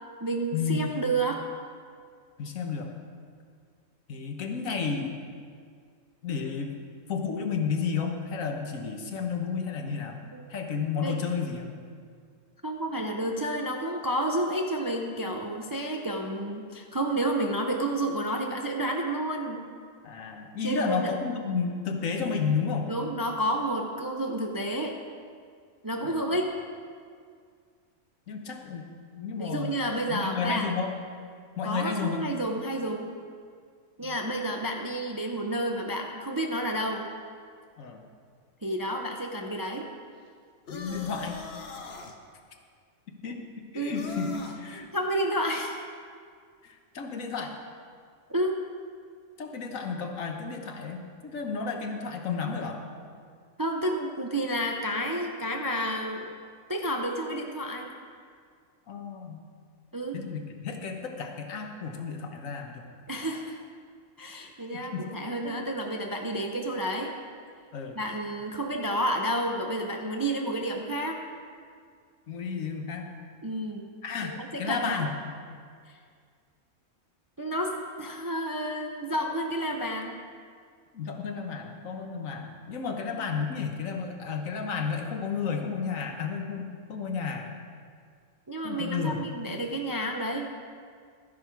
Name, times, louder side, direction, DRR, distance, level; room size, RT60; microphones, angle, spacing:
voice 1, 0.2-1.5 10.3-10.4 11.0-11.2 12.6-19.6 20.6-21.1 22.9-25.0 25.8-26.5 29.3-30.7 31.6-33.1 34.0-37.1 38.6-39.9 43.8-44.4 44.9-45.7 48.3-48.6 53.6-56.3 56.7-57.9 59.9-60.2 63.1-63.6 64.2-67.1 68.0-71.2 73.4-73.9 74.2-75.0 77.4-80.2 88.5-90.4, right 1 dB, 25° right, 2 dB, 0.5 m, -30 dB
voice 2, 2.4-2.9 4.1-5.2 6.2-6.7 7.1-10.2 10.5-11.7 20.0-22.9 28.3-29.7 30.1-30.9 31.6-32.2 34.0-34.1 37.8-38.0 40.7-41.4 43.2-43.4 43.7-44.9 46.6-47.5 49.4-52.8 58.9-59.4 60.1-62.8 64.9-65.1 65.4-65.6 67.7-68.0 72.3-73.1 74.0-75.1 80.9-87.5 88.6-89.2, left 5 dB, 75° left, 3 dB, 1.5 m, -32 dB
sound 1, 40.7-42.2 43.9-44.6, left 3 dB, 50° left, 1.1 m, -41 dB
12.5 x 10.5 x 4.6 m, 2.1 s
omnidirectional pair, 1.4 m